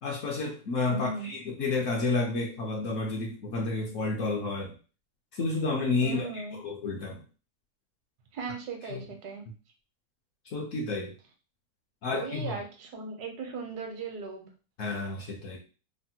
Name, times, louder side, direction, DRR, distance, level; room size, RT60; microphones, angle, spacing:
voice 1, 0.0-4.7 5.3-6.3 6.6-7.2 8.9-9.0 10.5-11.1 12.0-12.6 14.8-15.6, left 3 dB, 65° left, 0 dB, 0.8 m, -30 dB
voice 2, 0.9-1.3 6.0-6.6 8.3-9.4 12.1-14.5, right 4 dB, 80° right, 4 dB, 1.2 m, -37 dB
3.3 x 2.1 x 2.7 m, 0.35 s
omnidirectional pair, 1.7 m